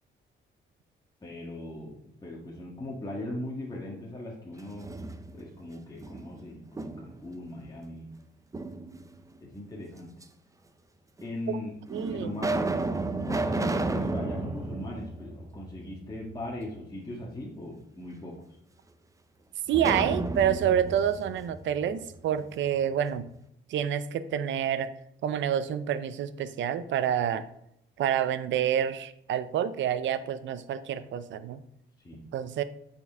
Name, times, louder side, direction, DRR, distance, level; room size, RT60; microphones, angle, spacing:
voice 1, 1.2-5.0 5.3-8.1 9.4-10.1 11.2-11.7 12.1-12.7 13.2-18.4 32.0-32.2, left 1 dB, 20° left, -3 dB, 1.5 m, -39 dB
sound 1, 4.6-5.6 6.0-7.3 8.5-9.3 10.2-10.3 11.2-11.3 11.9-16.0 16.3-16.4 19.7-22.5, right 2 dB, 15° right, 0.5 m, -32 dB
voice 2, 11.9-12.3 19.7-23.3 23.7-24.9 25.2-27.5 28.0-31.6 32.3-32.6, right 9 dB, 70° right, 14 dB, 0.5 m, -28 dB
8.2 x 4.5 x 3.5 m, 0.76 s
cardioid pair, 90°, 20 cm